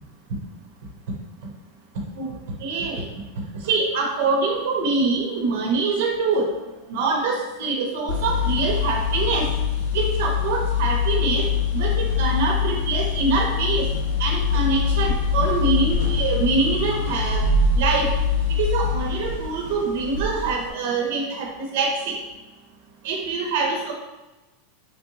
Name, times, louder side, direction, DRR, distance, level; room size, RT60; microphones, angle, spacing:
voice 1, 2.6-3.0 3.6-6.5 6.9-9.5 9.9-11.5 11.7-13.9 14.2-17.4 17.8-18.1 18.6-22.2 23.0-23.9, right 3 dB, 60° right, 1 dB, 0.5 m, -24 dB
sound 1, 8.1-20.7, left 5 dB, 70° left, 0.5 m, -24 dB
3.2 x 2.7 x 2.6 m, 1.1 s
supercardioid pair, 170°, 0 cm